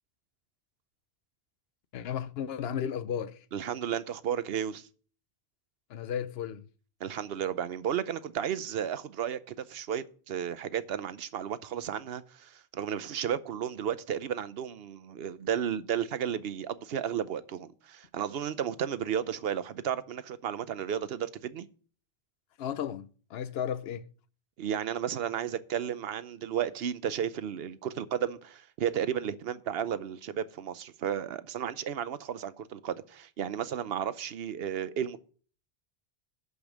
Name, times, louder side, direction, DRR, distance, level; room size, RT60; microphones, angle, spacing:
voice 1, 1.9-3.4 5.9-6.6 22.6-24.0, left 8 dB, 70° left, 0.9 m, -34 dB
voice 2, 3.5-4.9 7.0-21.7 24.6-35.2, right 9 dB, 70° right, 0.9 m, -33 dB
11.0 x 5.3 x 6.2 m
omnidirectional pair, 1.1 m